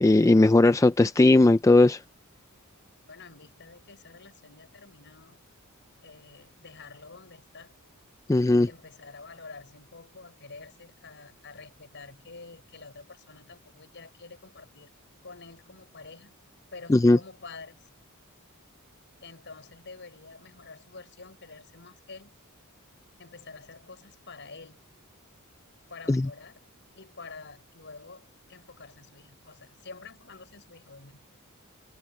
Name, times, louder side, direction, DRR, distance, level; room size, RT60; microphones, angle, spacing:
voice 1, 0.0-2.0 8.3-8.7 16.9-17.2 26.1-26.3, left 2 dB, 15° left, 0.3 m, -18 dB
voice 2, 3.1-5.4 6.0-7.7 8.7-14.9 15.2-16.4 16.7-17.9 19.2-22.4 23.2-24.9 25.9-26.7 26.9-31.3, left 4 dB, 55° left, 6.5 m, -48 dB
head